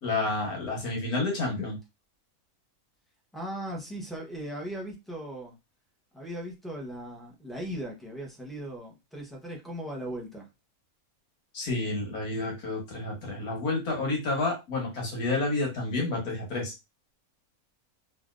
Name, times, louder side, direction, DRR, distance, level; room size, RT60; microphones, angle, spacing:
voice 1, 0.0-1.8 11.5-16.7, left 2 dB, 90° left, 1.8 m, -30 dB
voice 2, 3.3-5.5 6.1-10.5, right 1 dB, ahead, 0.6 m, -38 dB
3.4 x 2.6 x 2.4 m
omnidirectional pair, 1.6 m